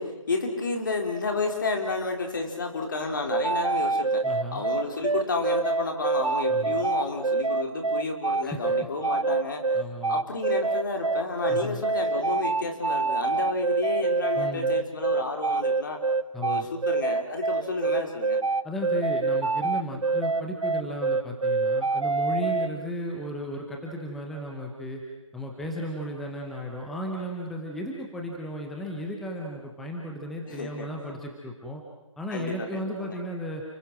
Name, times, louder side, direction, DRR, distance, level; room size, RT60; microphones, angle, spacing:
voice 1, 0.0-4.2 4.5-9.6 10.1-16.0 16.4-18.4 30.5-30.9 32.3-33.2, left 3 dB, 40° left, 3 dB, 4.0 m, -31 dB
sound 1, 3.3-22.7, right 3 dB, 80° right, 0.9 m, -25 dB
voice 2, 4.2-4.7 6.5-6.9 8.4-8.6 9.7-10.2 11.5-11.8 14.3-14.8 16.3-16.7 18.6-25.0 25.3-31.8 32.2-33.6, equal, ahead, 0 dB, 0.8 m, -35 dB
29.5 x 23.0 x 6.1 m, 1.0 s
figure-of-eight pair, 160°, 17 cm